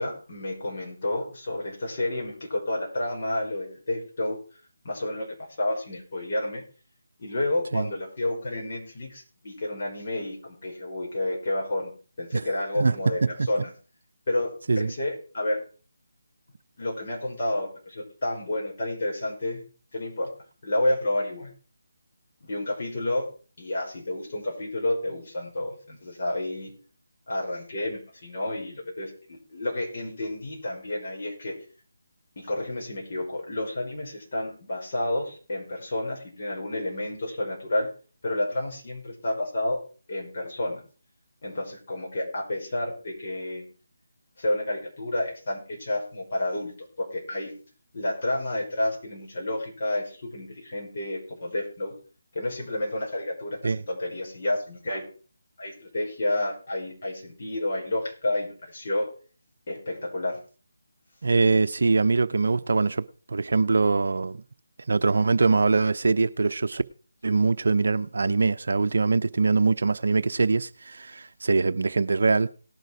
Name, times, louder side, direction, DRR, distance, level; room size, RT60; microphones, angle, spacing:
voice 1, 0.0-4.4 4.8-6.6 7.2-11.9 12.2-13.2 13.5-13.7 14.3-15.6 16.8-19.6 19.9-20.3 20.6-21.5 22.4-23.3 23.6-26.7 27.3-31.6 32.4-37.9 38.2-39.8 40.1-40.8 41.4-43.6 44.4-47.5 47.9-51.9 52.3-55.0 55.6-59.1 59.7-60.4, left 1 dB, 45° left, 5.4 m, -30 dB
voice 2, 61.2-64.4 64.9-66.8 67.2-72.5, right 4 dB, 65° right, 0.6 m, -23 dB
18.0 x 6.6 x 4.8 m
figure-of-eight pair, 160°, 0 cm